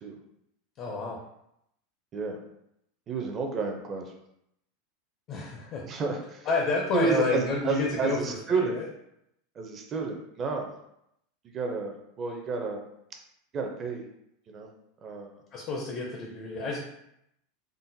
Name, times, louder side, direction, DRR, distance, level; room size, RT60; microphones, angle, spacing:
voice 1, 0.8-1.2 5.3-5.9 6.5-8.2 8.5-8.9 15.5-16.8, left 3 dB, 40° left, 0 dB, 0.5 m, -29 dB
voice 2, 3.1-4.1 5.8-6.5 6.9-8.8 9.5-10.7 11.5-12.8 13.5-14.0 14.5-14.7 15.0-15.3, right 5 dB, 25° right, 2 dB, 0.5 m, -31 dB
3.7 x 2.1 x 2.6 m, 0.78 s
supercardioid pair, 150°, 0 cm